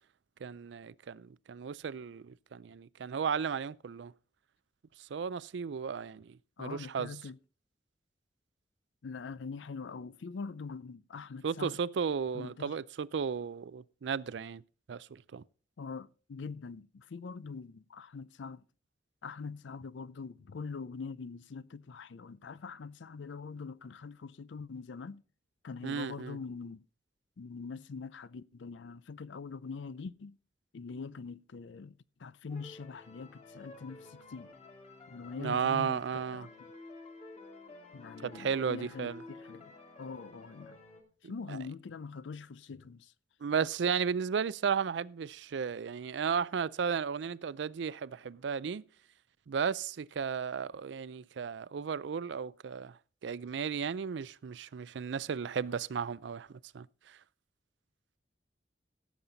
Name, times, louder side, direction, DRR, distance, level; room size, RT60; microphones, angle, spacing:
voice 1, 0.4-4.1 5.1-7.1 11.4-14.6 14.9-15.4 25.8-26.4 35.4-36.5 38.2-39.2 43.4-48.8 49.5-52.9 53.2-56.5 56.7-56.9, right 6 dB, 75° right, 0.4 m, -34 dB
voice 2, 6.6-7.4 9.0-11.8 12.3-12.8 15.8-18.6 19.2-25.2 25.6-26.8 27.4-30.4 30.7-31.9 32.2-34.5 35.1-36.7 37.9-40.8 41.2-43.1, left 5 dB, 90° left, 0.5 m, -43 dB
sound 1, 32.5-41.0, left 3 dB, 35° left, 2.5 m, -52 dB
16.5 x 7.2 x 3.9 m
head